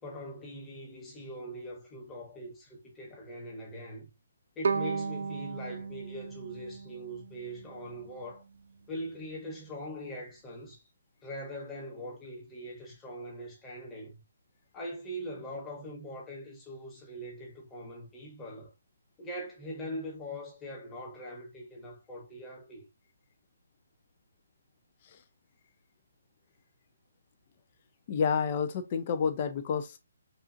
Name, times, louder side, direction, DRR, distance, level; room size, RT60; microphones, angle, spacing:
voice 1, 0.0-4.1 4.5-8.4 8.9-10.8 11.2-14.2 14.7-18.7 19.2-22.8, equal, 10° left, 1.2 m, -42 dB
Bowed string instrument, 4.6-7.7, right 5 dB, 65° right, 0.6 m, -34 dB
voice 2, 28.1-30.0, left 6 dB, 35° left, 0.6 m, -29 dB
5.4 x 2.5 x 2.8 m
hypercardioid pair, 165°, 0 cm